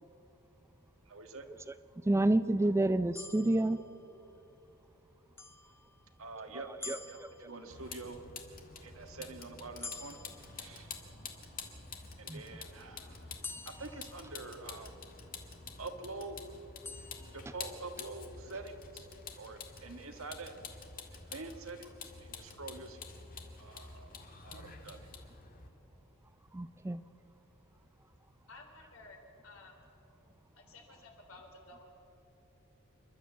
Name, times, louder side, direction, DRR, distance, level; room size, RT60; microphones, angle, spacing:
voice 1, 1.1-1.5 6.2-8.2 8.8-10.2 10.5-10.9 12.2-13.3 13.6-15.0 15.8-16.4 17.3-19.1 19.4-20.6 21.3-23.0 23.6-25.0, right 3 dB, 70° right, 6 dB, 1.6 m, -46 dB
voice 2, 2.1-3.8 6.5-7.5 12.3-12.4 26.5-27.0, right 1 dB, 15° right, 13 dB, 0.3 m, -30 dB
sound 1, 3.1-4.5 5.4-6.3 6.8-8.0 9.8-11.3 13.4-15.0 16.8-18.0, left 4 dB, 10° left, 0.7 m, -49 dB
Vehicle, 7.7-25.7, left 5 dB, 45° left, 2.0 m, -48 dB
voice 3, 28.5-29.7 30.6-31.8, left 2 dB, 70° left, 2 dB, 3.7 m, -54 dB
28.0 x 11.5 x 8.2 m, 3.0 s
head